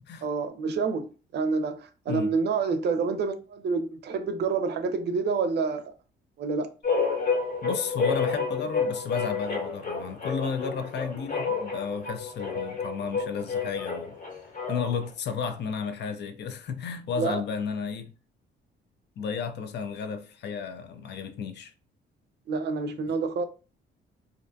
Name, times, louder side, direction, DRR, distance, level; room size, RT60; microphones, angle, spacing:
voice 1, 0.2-5.9 6.4-6.7 17.2-17.4 22.5-23.5, right 4 dB, 60° right, 0.5 m, -28 dB
sound 1, 6.8-15.1, left 5 dB, 40° left, 1.0 m, -30 dB
voice 2, 7.6-14.2 14.7-18.1 19.2-21.7 23.1-23.2, left 6 dB, 60° left, 0.5 m, -33 dB
2.5 x 2.2 x 2.6 m
cardioid pair, 90°, 20 cm